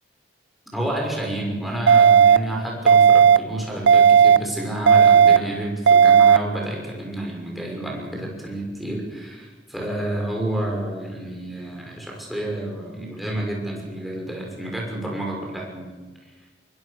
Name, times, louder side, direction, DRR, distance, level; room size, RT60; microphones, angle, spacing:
voice 1, 0.7-16.0, right 1 dB, ahead, -2 dB, 5.9 m, -29 dB
sound 1, 1.9-2.4 2.9-3.4 3.9-4.4 4.9-5.4 5.9-6.4, right 7 dB, 85° right, 0.6 m, -12 dB
23.5 x 22.0 x 6.7 m, 1.3 s
head